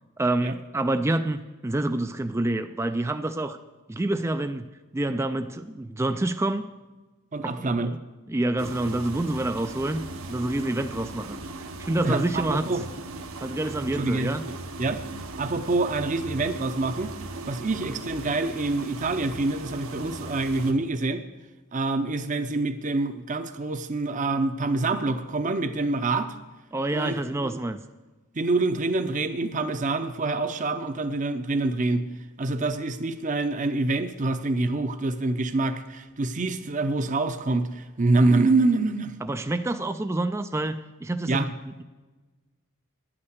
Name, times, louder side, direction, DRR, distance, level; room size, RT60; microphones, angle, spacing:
voice 1, 0.2-3.6 3.9-4.6 4.9-6.6 7.4-8.0 8.3-10.0 10.3-11.4 11.9-12.8 13.4-14.4 26.7-27.8 39.2-41.8, right 2 dB, 10° right, 9 dB, 0.3 m, -27 dB
voice 2, 7.3-7.9 12.0-12.8 13.9-14.3 14.8-15.0 15.4-17.1 17.5-21.2 21.7-26.3 26.9-27.5 28.3-32.1 32.4-39.1 41.3-41.5, right 2 dB, 35° right, 9 dB, 0.7 m, -26 dB
sound 1, 8.6-20.7, right 2 dB, 75° right, 1.2 m, -38 dB
10.5 x 8.7 x 8.1 m, 1.2 s
head